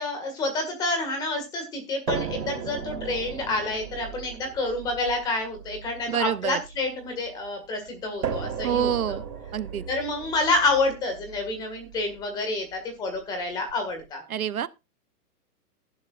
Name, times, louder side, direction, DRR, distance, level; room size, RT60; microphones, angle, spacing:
voice 1, 0.0-9.2 9.9-14.2, left 2 dB, 10° left, 1.9 m, -28 dB
sound 1, 2.1-7.3 8.2-12.2 13.2-13.3 13.7-13.8, right 7 dB, 85° right, 3.6 m, -36 dB
voice 2, 6.1-6.6 8.6-9.2 9.5-9.8 14.3-14.7, right 9 dB, 60° right, 0.9 m, -26 dB
14.5 x 11.5 x 2.5 m
hypercardioid pair, 180°, 48 cm